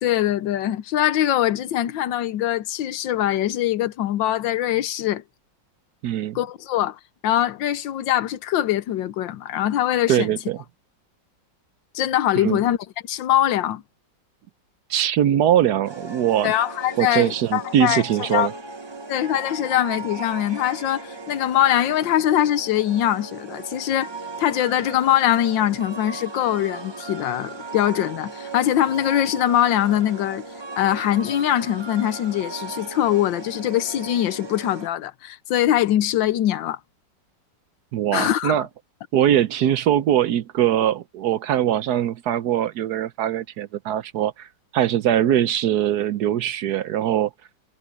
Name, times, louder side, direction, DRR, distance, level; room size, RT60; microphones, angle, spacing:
voice 1, 0.0-5.2 6.3-10.3 11.9-12.8 13.1-13.8 16.4-18.0 18.3-18.5 19.1-24.1 24.4-30.4 30.8-36.8 38.1-38.6, left 12 dB, 90° left, 1.5 m, -22 dB
voice 2, 6.0-6.4 10.1-10.6 12.4-12.6 14.9-16.5 17.0-18.5 37.9-38.7 39.1-44.5 44.7-47.3, right 11 dB, 65° right, 1.1 m, -21 dB
sound 1, 15.8-34.9, right 3 dB, 20° right, 0.7 m, -37 dB
omnidirectional pair, 2.0 m